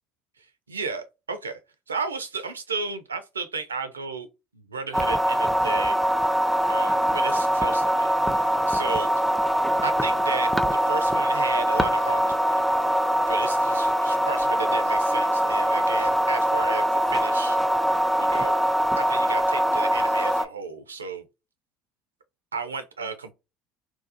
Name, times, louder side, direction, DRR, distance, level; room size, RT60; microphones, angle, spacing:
voice 1, 0.4-1.6 1.9-4.3 4.5-6.0 6.7-9.3 9.8-12.5 13.3-17.6 18.2-18.6 19.0-21.2 22.5-23.3, right 4 dB, 90° right, 0.4 m, -34 dB
sound 1, 4.9-20.5, equal, 5° right, 0.4 m, -23 dB
2.7 x 2.0 x 2.7 m
hypercardioid pair, 65°, 0 cm